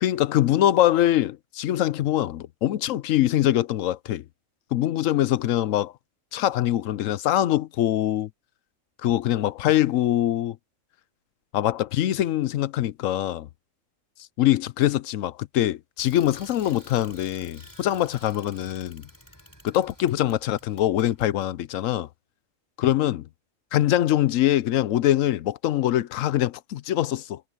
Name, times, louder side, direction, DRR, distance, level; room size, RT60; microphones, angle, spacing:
voice 1, 0.0-4.2 4.7-5.9 6.3-8.3 9.0-10.6 11.5-13.5 14.4-19.0 19.6-22.1 22.8-23.2 23.7-27.4, left 13 dB, 75° left, 1.0 m, -23 dB
Bicycle, 16.0-21.5, equal, 15° left, 6.6 m, -50 dB
omnidirectional pair, 1.4 m